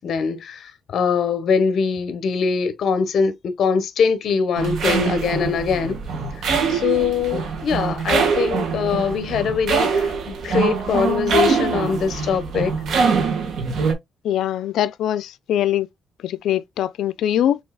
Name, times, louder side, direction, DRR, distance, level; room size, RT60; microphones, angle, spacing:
voice 1, 0.0-6.0 6.7-12.7, left 6 dB, 60° left, 1.0 m, -22 dB
sound 1, 4.6-13.9, right 5 dB, 70° right, 1.7 m, -23 dB
voice 2, 14.2-15.9 16.2-17.6, left 11 dB, 85° left, 0.4 m, -22 dB
6.3 x 3.3 x 2.3 m
cardioid pair, 150°, 0 cm